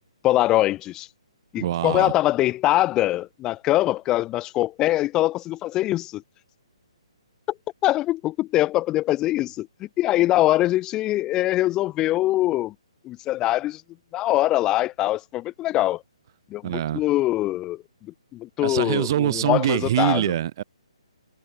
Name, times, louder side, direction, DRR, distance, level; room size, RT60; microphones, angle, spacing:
voice 1, 0.2-1.1 1.5-6.2 7.8-12.7 13.0-13.8 14.1-16.0 16.5-17.8 18.3-20.2, left 15 dB, 20° left, 0.5 m, -23 dB
voice 2, 1.6-2.1 16.6-17.0 18.6-20.6, right 12 dB, 45° right, 1.3 m, -24 dB
figure-of-eight pair, 140°, 3 cm